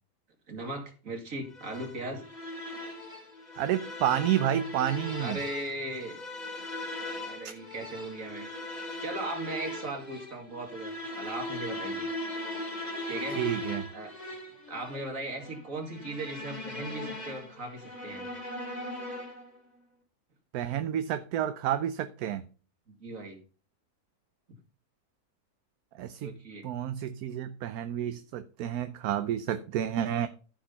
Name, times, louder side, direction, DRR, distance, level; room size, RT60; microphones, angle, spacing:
voice 1, 0.5-2.2 5.2-6.2 7.2-8.5 9.0-12.1 13.0-13.4 13.9-14.1 14.7-18.3 22.9-23.4 26.2-26.7, right 2 dB, 60° right, 2.6 m, -38 dB
sound 1, 1.5-19.6, left 1 dB, 30° left, 2.7 m, -39 dB
voice 2, 3.6-5.4 13.4-13.9 20.5-22.5 26.0-26.3 26.6-30.3, right 10 dB, 80° right, 1.1 m, -30 dB
14.5 x 4.8 x 5.5 m
omnidirectional pair, 1.6 m